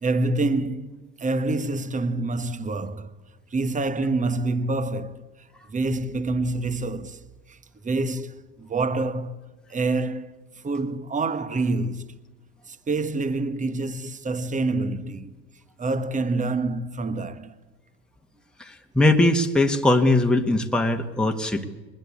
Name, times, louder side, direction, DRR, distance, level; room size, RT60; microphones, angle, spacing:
voice 1, 0.0-3.1 3.5-5.3 5.7-7.6 7.8-9.4 9.7-12.2 12.7-15.3 15.8-17.6 21.2-21.3, right 2 dB, 20° right, 1.3 m, -27 dB
voice 2, 18.6-21.6, left 2 dB, ahead, 1.6 m, -20 dB
22.5 x 20.0 x 8.5 m
hypercardioid pair, 90°, 39 cm